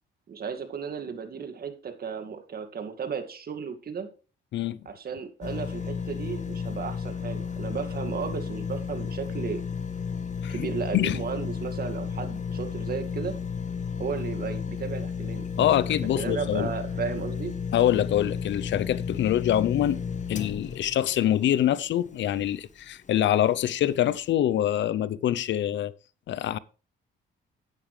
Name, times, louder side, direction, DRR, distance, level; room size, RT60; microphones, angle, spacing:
voice 1, 0.3-4.1 4.9-9.6 10.5-13.3 14.0-15.7 16.2-17.5, right 6 dB, 50° right, 2.2 m, -34 dB
sound 1, 5.4-22.6 23.1-23.2, left 6 dB, 40° left, 1.1 m, -33 dB
voice 2, 15.6-16.7 17.7-20.0 20.3-25.9 26.3-26.6, left 11 dB, 65° left, 0.6 m, -25 dB
11.0 x 8.8 x 3.3 m
cardioid pair, 90°, 20 cm